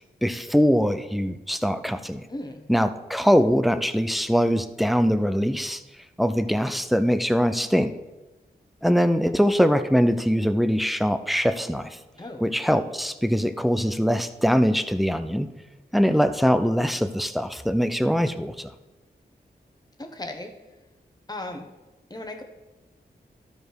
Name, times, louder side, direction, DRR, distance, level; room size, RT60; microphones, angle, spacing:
voice 1, 0.2-2.2 2.7-5.8 6.2-7.9 8.8-11.9 12.4-15.5 15.9-18.7, equal, ahead, 10 dB, 0.5 m, -22 dB
voice 2, 2.3-2.6 12.2-12.6 20.0-20.5 21.3-21.7 22.1-22.4, left 1 dB, 25° left, 4 dB, 1.3 m, -36 dB
12.5 x 5.0 x 4.7 m, 1.1 s
wide cardioid pair, 70°, 17 cm